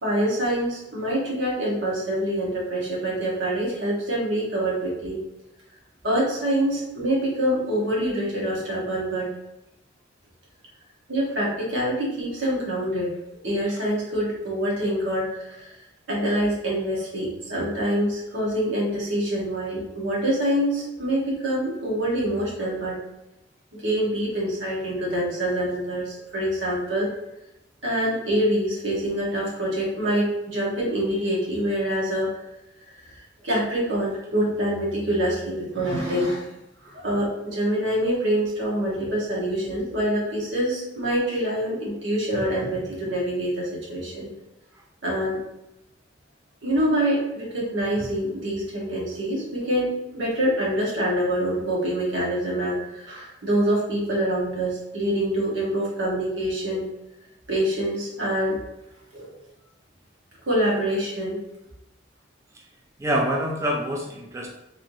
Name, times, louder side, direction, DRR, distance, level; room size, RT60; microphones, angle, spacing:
voice 1, 0.0-5.2 6.0-9.3 11.1-13.1 13.4-15.7 16.1-23.0 23.7-27.1 27.8-32.3 33.0-33.1 33.4-36.5 36.8-44.3 45.0-45.4 46.6-56.9 57.5-58.6 59.1-59.3 60.5-61.4, right 1 dB, 85° right, -5 dB, 1.4 m, -25 dB
voice 2, 63.0-64.5, equal, 15° right, -2 dB, 0.4 m, -26 dB
3.5 x 3.2 x 2.7 m, 0.89 s
head